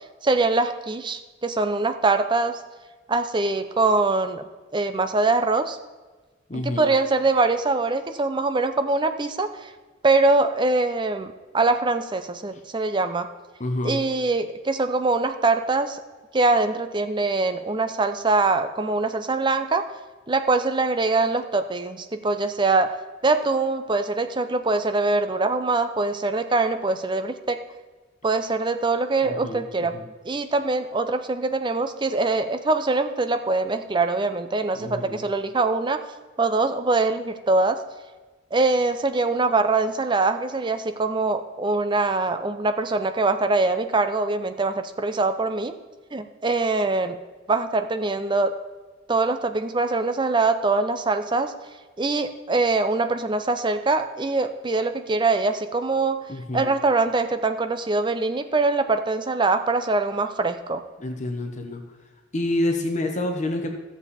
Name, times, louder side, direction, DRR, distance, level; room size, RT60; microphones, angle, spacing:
voice 1, 0.2-2.6 3.1-4.4 4.7-5.8 6.6-9.7 10.0-13.3 13.8-16.0 16.3-19.9 20.3-23.0 23.2-27.6 28.2-29.9 30.2-36.0 36.4-37.8 38.5-45.7 46.1-47.2 47.5-48.6 49.1-51.5 52.0-56.2 56.5-60.8, right 3 dB, 25° right, 9 dB, 0.5 m, -23 dB
voice 2, 6.5-6.9 13.6-14.0 29.2-30.1 34.7-35.2 56.3-56.7 61.0-61.8 62.3-63.7, left 1 dB, 40° left, 4 dB, 1.0 m, -28 dB
13.5 x 7.1 x 4.2 m, 1.3 s
head